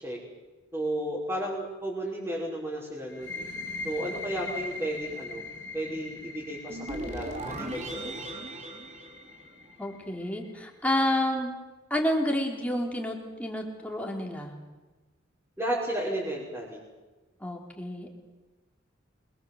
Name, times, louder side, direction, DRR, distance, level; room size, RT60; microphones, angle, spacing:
voice 1, 0.7-3.5 3.8-5.4 5.7-8.2 15.6-16.8, right 1 dB, 10° right, -8 dB, 6.1 m, -33 dB
sound 1, 3.1-10.5, left 3 dB, 70° left, 3.5 m, -41 dB
sound 2, 6.7-9.9, right 1 dB, 35° right, 3.3 m, -38 dB
voice 2, 9.8-11.5 11.9-14.5 17.4-18.2, left 1 dB, 5° left, 0 dB, 3.9 m, -29 dB
28.0 x 23.0 x 8.0 m, 1.2 s
head